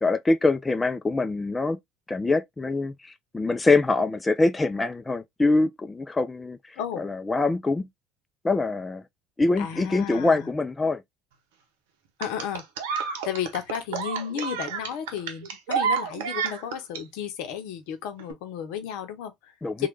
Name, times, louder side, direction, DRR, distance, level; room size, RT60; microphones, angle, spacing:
voice 1, 0.0-1.8 2.1-7.9 8.4-9.0 9.4-11.0 19.6-19.9, left 3 dB, 20° left, 0.4 m, -24 dB
voice 2, 6.8-7.1 9.6-10.5 12.2-12.6 13.2-19.9, left 9 dB, 70° left, 0.7 m, -33 dB
sound 1, 12.2-17.0 18.2-18.3, right 7 dB, 75° right, 0.7 m, -29 dB
3.1 x 2.2 x 3.1 m
hypercardioid pair, 65°, 0 cm